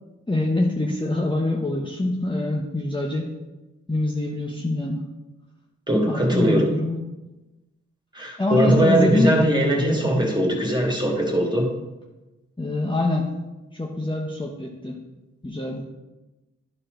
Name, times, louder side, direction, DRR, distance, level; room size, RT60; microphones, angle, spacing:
voice 1, 0.3-3.3 3.9-5.1 6.1-7.0 8.4-9.4 12.6-13.3 13.7-15.0 15.4-15.8, left 1 dB, 15° left, -2 dB, 1.1 m, -24 dB
voice 2, 5.9-6.7 8.1-11.7, right 1 dB, 15° right, -1 dB, 2.4 m, -20 dB
12.0 x 4.3 x 3.9 m, 1.1 s
cardioid pair, 50°, 29 cm